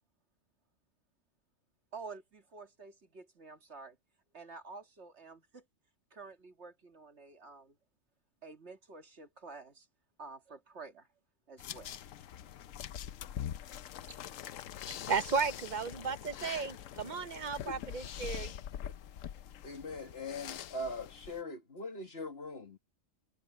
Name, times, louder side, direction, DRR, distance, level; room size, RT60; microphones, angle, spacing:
voice 1, 1.9-4.0 4.3-5.6 6.1-7.8 8.4-9.9 10.2-11.1 11.5-12.0 14.1-14.2, right 4 dB, 60° right, 2.2 m, -50 dB
sound 1, 11.6-21.4, left 10 dB, 90° left, 1.1 m, -44 dB
voice 2, 14.9-18.5, right 5 dB, 40° right, 0.8 m, -34 dB
voice 3, 19.6-22.8, left 2 dB, 50° left, 2.2 m, -41 dB
omnidirectional pair, 1.3 m